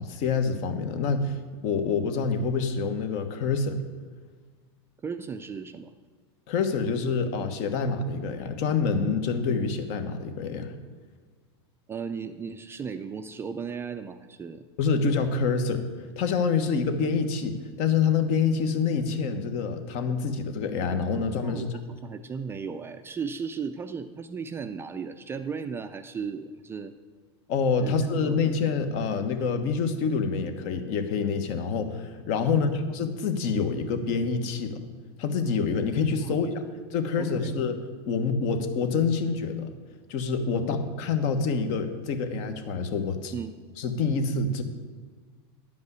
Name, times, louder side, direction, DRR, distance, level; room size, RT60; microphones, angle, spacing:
voice 1, 0.0-1.3 1.6-3.8 6.5-10.7 14.8-15.8 16.2-21.7 27.5-34.8 35.2-36.5 36.9-37.8 38.0-39.7 40.1-43.3 43.8-44.6, left 5 dB, 50° left, 8 dB, 1.2 m, -26 dB
voice 2, 5.0-5.9 11.9-14.6 21.4-26.9 27.8-28.0 28.3-28.6 32.4-32.9 36.2-36.4 37.2-37.6 40.5-40.8 43.3-43.5, right 6 dB, 15° right, 8 dB, 0.4 m, -36 dB
11.0 x 5.3 x 8.1 m, 1.6 s
supercardioid pair, 135°, 14 cm